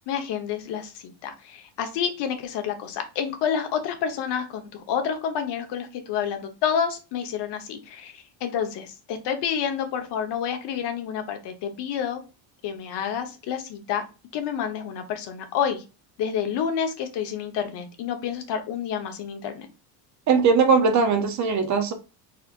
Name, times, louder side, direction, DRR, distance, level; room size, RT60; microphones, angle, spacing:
voice 1, 0.1-12.2 12.6-14.0 14.3-15.8 16.2-19.7, left 8 dB, 60° left, 1.1 m, -29 dB
voice 2, 20.3-21.9, right 5 dB, 40° right, 0.7 m, -20 dB
4.3 x 4.1 x 2.5 m
cardioid pair, 145°, 46 cm